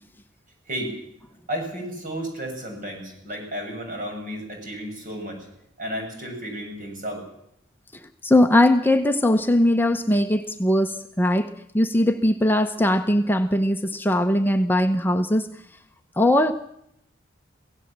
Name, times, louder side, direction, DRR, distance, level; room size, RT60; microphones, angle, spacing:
voice 1, 1.5-5.5 5.8-7.2, equal, 45° right, 2 dB, 7.2 m, -32 dB
voice 2, 8.2-11.5 11.7-15.5 16.2-16.5, left 1 dB, 10° left, 6 dB, 0.8 m, -20 dB
24.0 x 16.5 x 7.4 m, 0.76 s
head